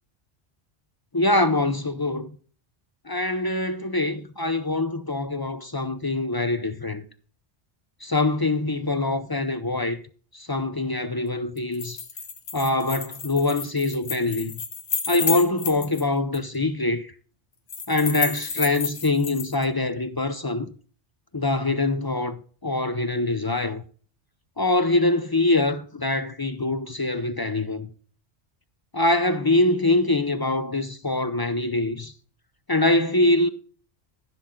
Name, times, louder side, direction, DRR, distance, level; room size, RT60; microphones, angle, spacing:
voice 1, 1.1-2.3 3.1-7.1 8.0-10.0 10.3-12.0 12.5-14.5 15.1-17.1 17.9-20.7 21.3-23.8 24.6-27.9 28.9-32.1 32.7-33.5, left 2 dB, 25° left, 0.5 m, -24 dB
sound 1, 11.6-16.0 16.3-16.4 17.7-19.6, left 5 dB, 75° left, 1.5 m, -31 dB
14.5 x 6.2 x 3.7 m
omnidirectional pair, 1.1 m